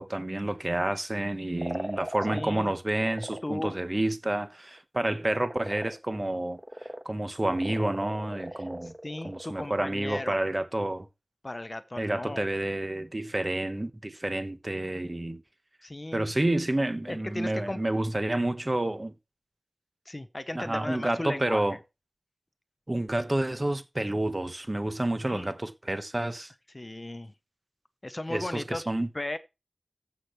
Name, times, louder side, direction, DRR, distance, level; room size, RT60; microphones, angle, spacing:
voice 1, 0.0-8.9 9.2-11.1 12.0-15.4 16.1-19.1 20.5-21.8 22.9-26.5 28.3-29.1, right 1 dB, 30° right, 1.2 m, -29 dB
sound 1, 1.6-2.6 2.9-3.4 3.8-4.0 4.4-4.5 4.7-4.8 5.1-7.1 7.4-10.5, equal, 15° right, 1.4 m, -40 dB
voice 2, 2.3-2.7 3.4-3.8 8.5-10.4 11.4-12.4 15.8-16.3 17.1-17.8 20.0-21.8 25.2-25.5 26.7-27.3 28.0-28.9 29.1-29.4, left 1 dB, 30° left, 0.9 m, -36 dB
15.0 x 6.0 x 3.2 m
wide cardioid pair, 70°, 0 cm